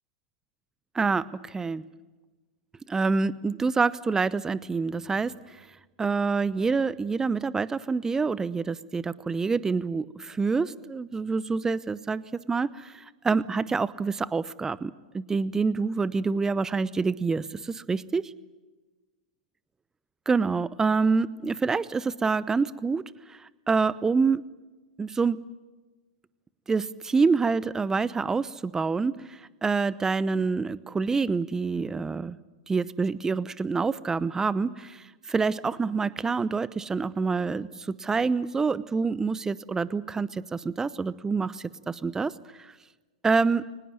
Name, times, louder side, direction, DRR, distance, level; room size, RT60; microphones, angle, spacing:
voice 1, 0.9-1.8 2.9-5.3 6.0-12.2 12.5-18.3 20.3-23.0 23.3-24.4 25.0-25.4 26.7-32.4 32.7-42.3 42.6-42.7 43.2-43.6, right 4 dB, 15° right, 19 dB, 0.8 m, -27 dB
23.5 x 20.0 x 9.3 m, 1.2 s
figure-of-eight pair, 105°, 4 cm